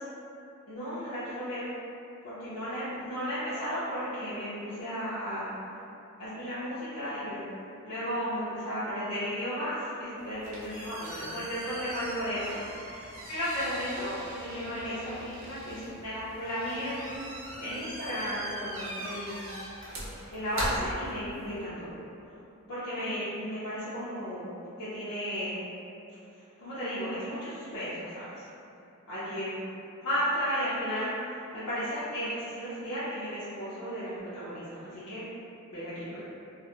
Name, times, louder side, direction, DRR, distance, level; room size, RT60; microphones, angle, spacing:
voice 1, 0.7-1.7 2.2-5.5 6.2-7.4 7.8-17.3 17.6-19.4 20.3-21.9 22.7-24.4 24.8-25.6 26.6-28.2 29.1-29.6 30.0-35.2 35.7-36.2, equal, 80° left, -13 dB, 0.6 m, -34 dB
sound 1, 10.2-21.6, right 1 dB, 60° right, 0.5 m, -41 dB
2.3 x 2.0 x 2.7 m, 2.7 s
head